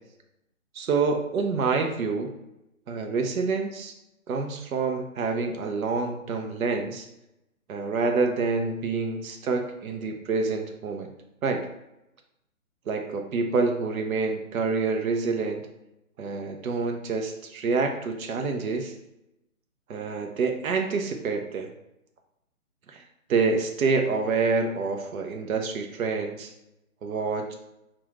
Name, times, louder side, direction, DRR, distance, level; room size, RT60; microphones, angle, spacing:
voice 1, 0.7-2.3 2.9-3.9 4.3-7.1 7.7-11.1 11.4-11.7 12.9-15.6 16.2-18.9 19.9-21.7 22.9-23.0 23.3-26.5 27.0-27.5, right 4 dB, 70° right, 4 dB, 0.6 m, -27 dB
3.1 x 2.3 x 2.4 m, 0.89 s
hypercardioid pair, 170°, 43 cm